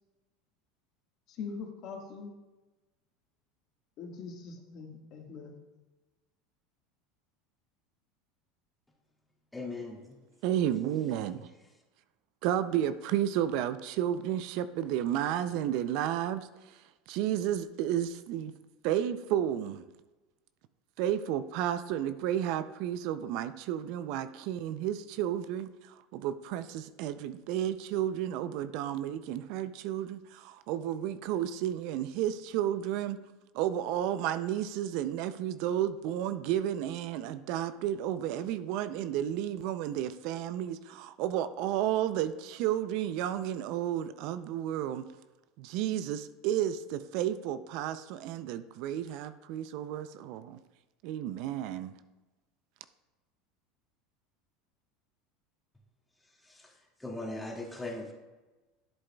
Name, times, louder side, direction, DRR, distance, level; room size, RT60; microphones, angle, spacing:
voice 1, 1.3-2.3 4.0-5.6, left 5 dB, 55° left, 1 dB, 1.6 m, -42 dB
voice 2, 9.5-10.2 56.5-56.7 57.0-58.1, left 2 dB, 10° left, -1 dB, 1.9 m, -39 dB
voice 3, 10.4-11.5 12.4-16.8 17.1-18.5 18.8-19.8 21.0-33.2 33.5-45.1 45.6-50.6 51.0-51.9, right 11 dB, 65° right, 12 dB, 0.4 m, -32 dB
12.0 x 7.6 x 2.3 m, 1.1 s
supercardioid pair, 100°, 0 cm